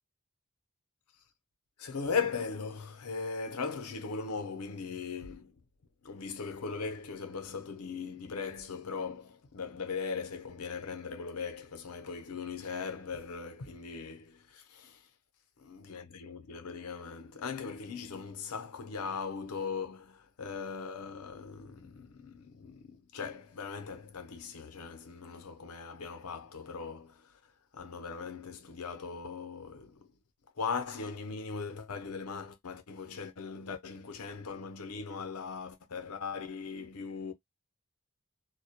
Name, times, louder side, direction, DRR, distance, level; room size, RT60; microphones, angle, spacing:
voice 1, 1.8-5.5 6.0-15.0 15.6-27.3 27.7-30.1 30.6-37.3, left 5 dB, 80° left, 0.6 m, -39 dB
2.2 x 2.1 x 2.7 m
head